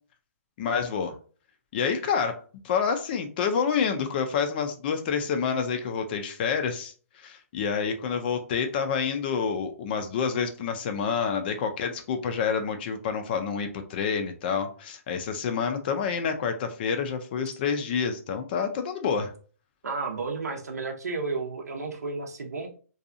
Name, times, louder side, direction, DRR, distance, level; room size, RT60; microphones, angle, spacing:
voice 1, 0.6-1.2 1.7-2.4 2.6-19.3, left 6 dB, 40° left, 6 dB, 0.3 m, -28 dB
voice 2, 19.8-22.7, right 4 dB, 85° right, 3 dB, 0.6 m, -32 dB
2.6 x 2.3 x 2.5 m, 0.40 s
hypercardioid pair, 145°, 8 cm